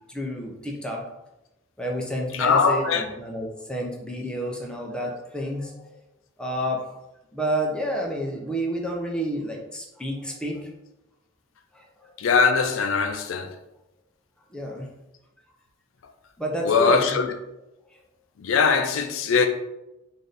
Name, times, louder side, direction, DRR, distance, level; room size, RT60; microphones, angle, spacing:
voice 1, 0.1-1.0 1.8-5.9 6.4-6.8 7.3-10.7 11.7-11.8 14.5-14.8 16.4-17.3, equal, 5° left, 0.5 m, -30 dB
voice 2, 2.3-3.0 12.2-13.5 16.6-17.2 18.4-19.5, left 5 dB, 75° left, 0.4 m, -21 dB
3.3 x 2.6 x 4.0 m
head